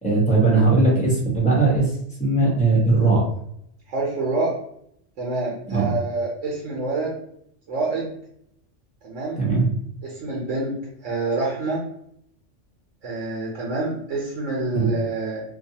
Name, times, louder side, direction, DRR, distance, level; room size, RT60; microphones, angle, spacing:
voice 1, 0.0-1.9 2.2-3.2 5.7-5.9 9.4-9.7 14.7-14.9, right 3 dB, 5° left, -5 dB, 0.7 m, -19 dB
voice 2, 3.9-4.5 5.2-7.2 7.7-8.1 9.0-9.4 10.0-10.7 11.0-11.8 13.0-15.4, right 3 dB, 85° right, -4 dB, 1.1 m, -27 dB
2.6 x 2.2 x 2.7 m, 0.71 s
omnidirectional pair, 1.3 m